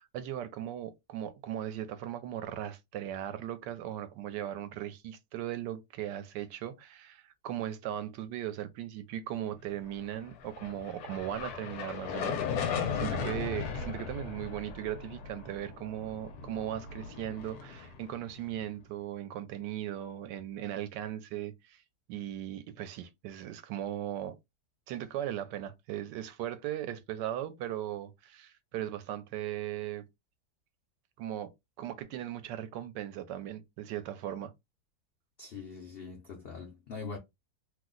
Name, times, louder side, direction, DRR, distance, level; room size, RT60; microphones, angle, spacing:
voice 1, 0.0-21.8 22.1-24.4 24.9-30.0 31.2-31.5 31.8-34.5, right 11 dB, 85° right, 1.2 m, -38 dB
sound 1, 10.3-18.7, left 6 dB, 70° left, 1.1 m, -37 dB
voice 2, 35.4-37.2, left 4 dB, 85° left, 0.5 m, -42 dB
3.0 x 2.0 x 3.7 m
omnidirectional pair, 1.9 m